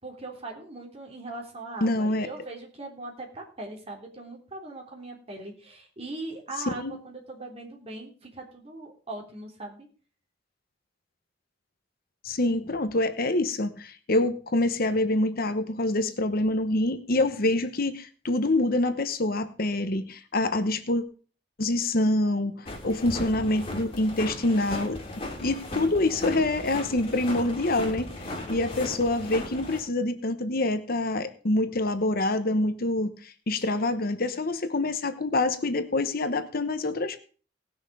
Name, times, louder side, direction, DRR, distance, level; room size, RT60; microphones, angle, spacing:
voice 1, 0.0-9.9, right 2 dB, 35° right, 0 dB, 3.5 m, -40 dB
voice 2, 1.8-2.3 6.8-6.9 12.2-21.0 21.6-25.0 25.4-28.1 28.5-37.2, left 2 dB, 55° left, 10 dB, 1.0 m, -26 dB
sound 1, 22.6-29.8, left 1 dB, 30° left, 3.1 m, -37 dB
18.5 x 6.3 x 4.9 m, 0.40 s
head